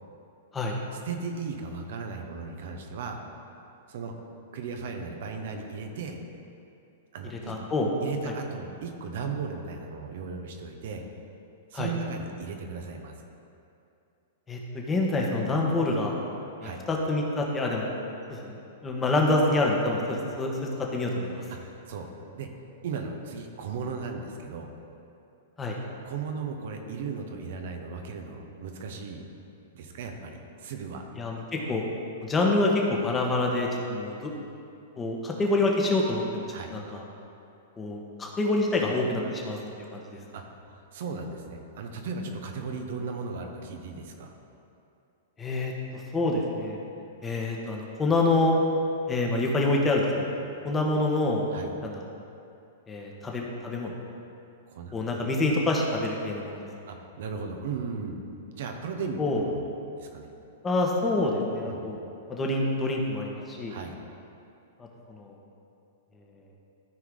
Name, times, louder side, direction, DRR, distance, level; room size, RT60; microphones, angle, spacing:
voice 1, 1.0-3.2 3.9-4.1 4.5-6.2 7.1-7.6 8.0-11.0 11.7-13.1 16.6-16.8 21.5-22.1 22.3-22.5 22.8-24.7 26.0-29.2 29.7-31.1 36.5-36.7 40.3-44.3 51.5-51.7 54.7-55.2 56.9-58.2 58.5-59.6 60.0-60.3 61.7-61.8 63.7-64.0, right 5 dB, 65° right, 3 dB, 1.1 m, -36 dB
voice 2, 7.5-7.9 11.7-11.9 14.5-16.2 16.6-17.9 18.3-20.5 20.9-21.5 25.6-25.8 31.2-31.8 32.2-34.3 35.0-36.4 36.7-37.0 37.8-39.6 39.9-40.2 45.4-46.8 47.2-48.6 49.1-50.1 50.6-51.5 51.8-52.0 52.9-53.9 54.9-56.6 59.2-59.4 60.6-62.0 62.3-63.8 65.1-65.3, left 2 dB, 20° left, -1 dB, 1.4 m, -27 dB
13.5 x 4.7 x 3.9 m, 2.7 s
hypercardioid pair, 120°, 0 cm